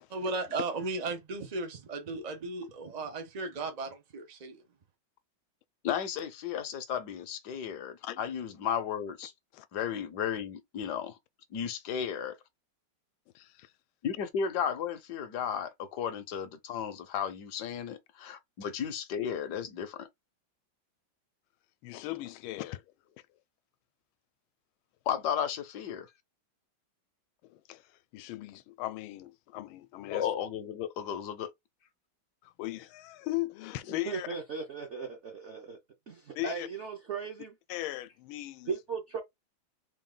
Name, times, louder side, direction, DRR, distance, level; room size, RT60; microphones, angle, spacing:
voice 1, 0.1-4.6, right 3 dB, 85° right, 0.3 m, -36 dB
voice 2, 5.8-9.3 9.7-11.2 11.5-12.4 14.0-20.1 25.1-26.1 30.1-31.5 33.9-34.0, left 8 dB, 65° left, 1.1 m, -34 dB
voice 3, 13.3-13.7 21.8-22.8 27.5-27.8 28.1-30.3 32.4-34.3 36.3-36.7 37.7-38.7, left 17 dB, 85° left, 1.4 m, -38 dB
voice 4, 34.0-35.8 36.1-37.5 38.7-39.2, right 5 dB, 60° right, 0.7 m, -37 dB
3.8 x 2.4 x 3.7 m
omnidirectional pair, 2.2 m